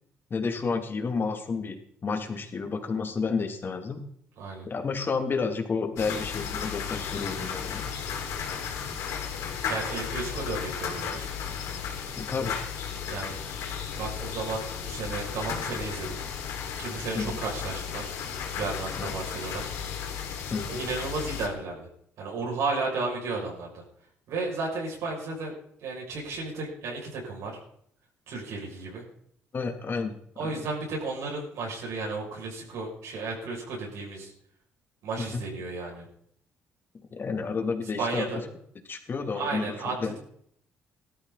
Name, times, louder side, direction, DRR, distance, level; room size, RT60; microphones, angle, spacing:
voice 1, 0.3-4.0 4.7-7.9 12.1-12.5 17.1-17.3 18.9-19.1 20.5-20.8 29.5-30.1 30.4-30.6 35.2-35.4 37.1-38.2 38.9-39.7 40.0-40.2, left 4 dB, 45° left, 4 dB, 3.2 m, -30 dB
voice 2, 4.4-4.7 9.6-11.3 13.1-13.4 14.0-16.2 16.8-18.1 18.6-19.7 20.7-21.9 22.2-23.8 24.3-27.6 28.3-29.0 30.4-34.3 35.0-36.1 38.0-38.4 39.3-40.2, right 3 dB, 75° right, -2 dB, 7.2 m, -33 dB
sound 1, 6.0-21.5, left 7 dB, 75° left, 3.9 m, -34 dB
17.5 x 13.5 x 4.3 m, 0.68 s
supercardioid pair, 55°, 5 cm